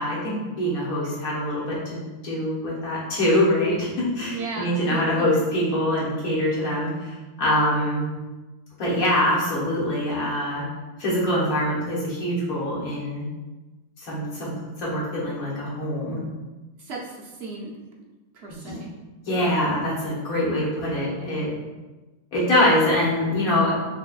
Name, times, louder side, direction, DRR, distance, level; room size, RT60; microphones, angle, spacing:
voice 1, 0.0-8.1 8.8-10.6 11.0-13.3 14.0-14.5 14.8-16.2 18.6-18.8 19.3-21.5 22.3-23.7, left 1 dB, 65° left, -7 dB, 1.6 m, -24 dB
voice 2, 4.3-5.3 16.8-17.8 18.3-18.9, right 3 dB, 60° right, -2 dB, 0.7 m, -35 dB
5.1 x 3.0 x 2.3 m, 1.2 s
omnidirectional pair, 1.7 m